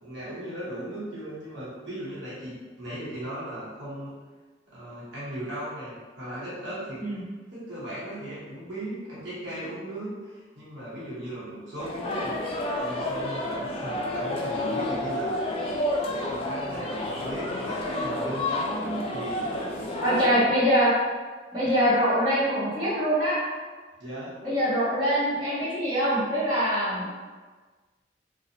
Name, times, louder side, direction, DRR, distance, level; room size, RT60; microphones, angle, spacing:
voice 1, 0.0-4.2 4.7-7.0 7.5-12.4 12.8-15.5 16.1-20.2 21.6-21.7 24.0-24.3, right 1 dB, 80° right, -10 dB, 1.0 m, -37 dB
sound 1, 11.8-20.3, left 1 dB, 30° left, 0.3 m, -30 dB
voice 2, 20.0-20.9 21.5-23.4 24.4-27.2, equal, 25° right, -13 dB, 1.2 m, -24 dB
2.5 x 2.3 x 2.8 m, 1.4 s
head